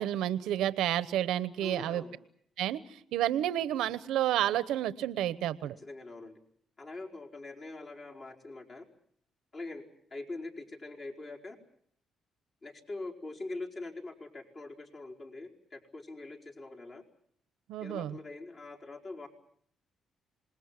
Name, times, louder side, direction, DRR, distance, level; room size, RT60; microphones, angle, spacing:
voice 1, 0.0-2.0 2.6-5.7 17.7-18.2, right 12 dB, 90° right, 15 dB, 0.9 m, -30 dB
voice 2, 1.6-2.1 5.8-6.4 6.8-8.9 9.5-11.6 12.6-17.0 17.8-19.3, left 2 dB, 45° left, 0 dB, 4.7 m, -43 dB
27.0 x 20.5 x 7.5 m, 0.67 s
cardioid pair, 90°, 0 cm